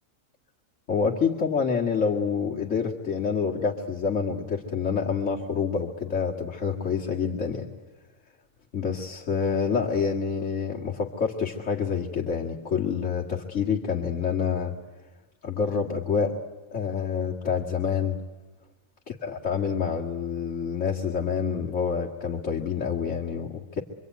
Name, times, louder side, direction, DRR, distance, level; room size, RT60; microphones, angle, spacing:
voice 1, 0.9-7.7 8.7-14.7 15.4-16.3 16.7-18.2 19.1-23.8, left 6 dB, 60° left, -3 dB, 2.3 m, -27 dB
25.5 x 24.5 x 9.4 m, 1.2 s
omnidirectional pair, 1.4 m